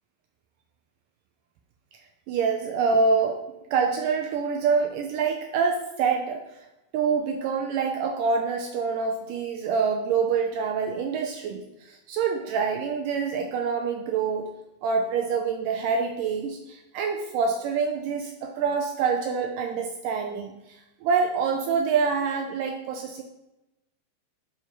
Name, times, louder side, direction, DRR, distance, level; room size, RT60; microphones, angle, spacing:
voice 1, 2.3-3.4 3.7-6.4 6.9-14.5 14.8-23.2, right 5 dB, 90° right, 3 dB, 1.8 m, -26 dB
12.0 x 4.6 x 4.6 m, 0.96 s
omnidirectional pair, 4.7 m